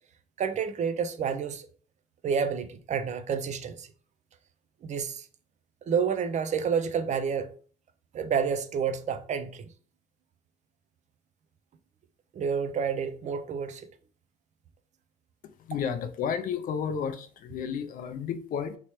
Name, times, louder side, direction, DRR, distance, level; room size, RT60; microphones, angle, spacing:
voice 1, 0.4-1.7 2.2-3.9 4.8-5.2 5.9-7.5 8.1-9.7 12.3-13.8, right 6 dB, 45° right, 0.4 m, -29 dB
voice 2, 15.6-18.8, left 7 dB, 55° left, 0.5 m, -32 dB
3.2 x 3.0 x 3.0 m
cardioid pair, 110°, 17 cm